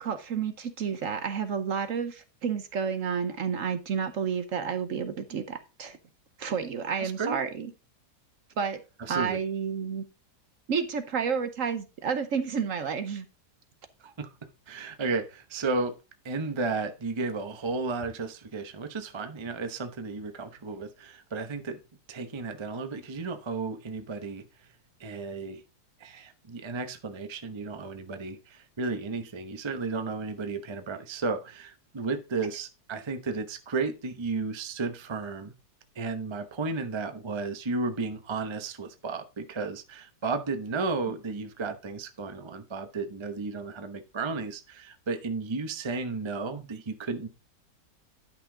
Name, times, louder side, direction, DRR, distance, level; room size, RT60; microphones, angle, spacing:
voice 1, 0.0-6.0 6.4-7.7 8.6-8.8 9.1-10.0 10.7-13.2, right 6 dB, 55° right, 1.1 m, -30 dB
voice 2, 7.0-7.4 9.0-9.4 14.0-14.3 14.7-15.9 16.2-21.8 22.1-24.4 25.0-25.6 26.0-35.5 36.0-47.3, right 4 dB, 25° right, 0.6 m, -33 dB
10.5 x 6.0 x 3.8 m
omnidirectional pair, 1.8 m